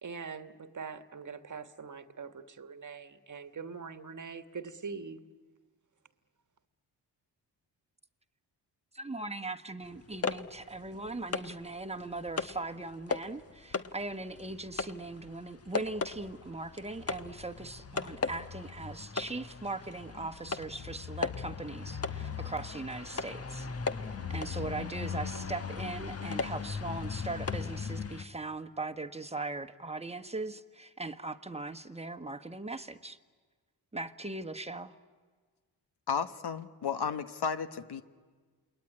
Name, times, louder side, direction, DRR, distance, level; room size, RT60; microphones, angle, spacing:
voice 1, 0.0-5.2, right 5 dB, 40° right, 10 dB, 1.5 m, -43 dB
voice 2, 8.9-23.7 24.3-33.2 33.9-34.9, right 2 dB, 15° right, 7 dB, 1.4 m, -39 dB
sound 1, 9.9-11.6 12.0-12.6 13.1-13.4 13.7-28.2, left 5 dB, 30° left, 1.2 m, -37 dB
voice 3, 36.1-38.0, left 6 dB, 60° left, 10 dB, 1.4 m, -33 dB
28.0 x 21.0 x 9.9 m, 1.5 s
supercardioid pair, 50°, 45 cm